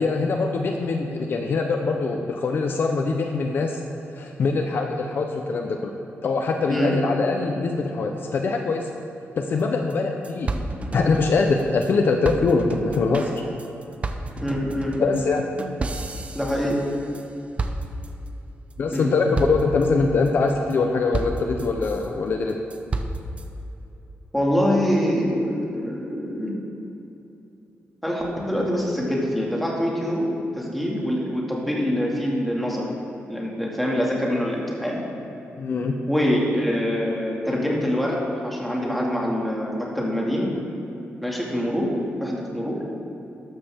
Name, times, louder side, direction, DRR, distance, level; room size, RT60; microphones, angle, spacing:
voice 1, 0.0-3.8 4.2-5.9 6.2-8.9 9.4-10.5 10.9-13.4 15.0-15.5 18.8-22.6 35.6-36.0, left 4 dB, 50° left, 3 dB, 0.8 m, -23 dB
sound 1, 9.6-9.7 9.9-10.0 10.2-11.9 12.2-17.3 17.6-18.3 18.7-19.0 19.3-19.9 20.3-20.7 21.1-22.1 22.5-23.5, right 2 dB, 30° right, 0.7 m, -31 dB
voice 2, 14.4-15.2 16.3-16.8 18.9-19.1 24.3-26.5 28.0-30.3 30.6-32.9 33.3-35.0 36.1-40.6 41.2-41.9 42.2-42.8, equal, ahead, -4 dB, 2.2 m, -24 dB
13.0 x 12.5 x 3.6 m, 2.9 s
wide cardioid pair, 150°, 5 cm